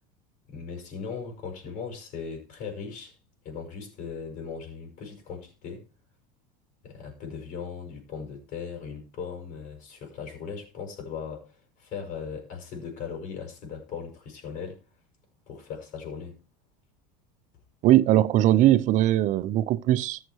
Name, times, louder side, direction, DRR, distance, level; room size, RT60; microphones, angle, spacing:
voice 1, 0.5-3.1 3.4-5.8 6.8-14.8 15.5-16.4, left 6 dB, 45° left, 6.2 m, -38 dB
voice 2, 17.8-20.2, right 13 dB, 45° right, 0.9 m, -20 dB
14.5 x 6.8 x 4.8 m
supercardioid pair, 125°, 17 cm